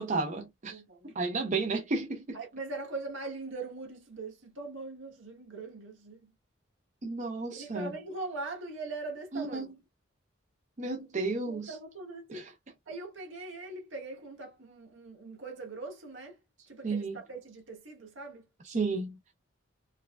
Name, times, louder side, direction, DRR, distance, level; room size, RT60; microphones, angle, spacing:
voice 1, 0.0-0.8 1.1-2.4 7.0-7.9 9.3-9.7 10.8-11.8 12.3-12.5 16.8-17.1 18.6-19.2, right 3 dB, 40° right, 0.6 m, -32 dB
voice 2, 0.6-1.1 2.3-6.3 7.5-9.7 11.4-12.5 12.9-16.4 16.7-18.4, right 3 dB, 70° right, 1.5 m, -41 dB
4.7 x 2.2 x 2.2 m
head